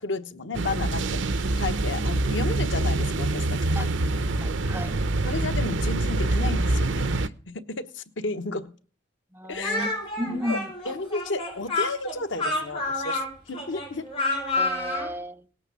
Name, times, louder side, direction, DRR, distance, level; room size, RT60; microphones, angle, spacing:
voice 1, 0.0-3.9 5.2-8.7 9.5-9.7 10.3-14.1, left 3 dB, 90° left, 1.2 m, -33 dB
sound 1, 0.5-7.3, right 2 dB, 80° right, 0.8 m, -25 dB
voice 2, 4.4-5.0 9.3-9.9 10.2-10.7 14.6-15.4, equal, 10° right, 0.9 m, -33 dB
Speech, 9.6-15.1, left 2 dB, 30° left, 7.3 m, -29 dB
18.5 x 9.0 x 7.0 m
head